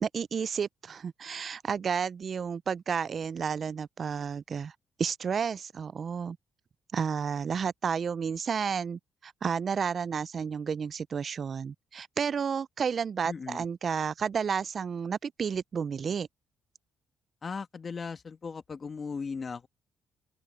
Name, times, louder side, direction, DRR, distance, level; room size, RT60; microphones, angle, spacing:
voice 1, 0.0-4.7 5.0-6.4 6.9-16.3, right 6 dB, 50° right, 0.3 m, -31 dB
voice 2, 13.3-13.7 17.4-19.7, left 5 dB, 40° left, 1.5 m, -37 dB
open air
cardioid pair, 90°, 0 cm